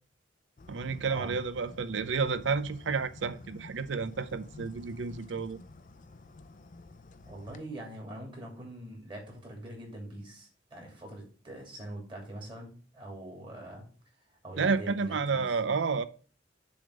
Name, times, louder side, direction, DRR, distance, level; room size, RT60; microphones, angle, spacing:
sound 1, 0.6-7.6, left 2 dB, 45° left, 0.5 m, -51 dB
voice 1, 0.7-5.6 14.6-16.0, right 5 dB, 85° right, 0.6 m, -30 dB
voice 2, 7.3-13.8 14.4-15.6, right 1 dB, 25° right, 2.8 m, -43 dB
7.1 x 3.5 x 6.3 m
head